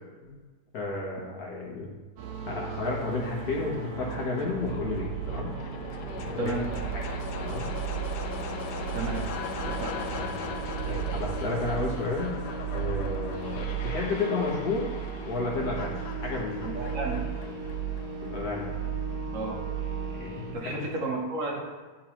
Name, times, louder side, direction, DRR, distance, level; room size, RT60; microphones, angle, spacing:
voice 1, 0.7-2.0 2.5-5.5 6.2-6.5 6.9-7.1 7.4-7.6 10.0-10.4 10.9-12.4 12.7-14.9 15.3-16.8 18.2-18.7 20.2-20.9, left 3 dB, 65° left, -4 dB, 1.7 m, -32 dB
sound 1, 2.2-20.6, right 7 dB, 75° right, 1.3 m, -35 dB
sound 2, 2.8-18.9, left 5 dB, 85° left, 1.3 m, -40 dB
voice 2, 8.9-9.3 9.7-9.9 16.6-17.2 19.3-19.6 20.5-21.6, right 2 dB, 60° right, 0 dB, 1.0 m, -32 dB
10.0 x 3.8 x 3.0 m, 1.3 s
omnidirectional pair, 1.8 m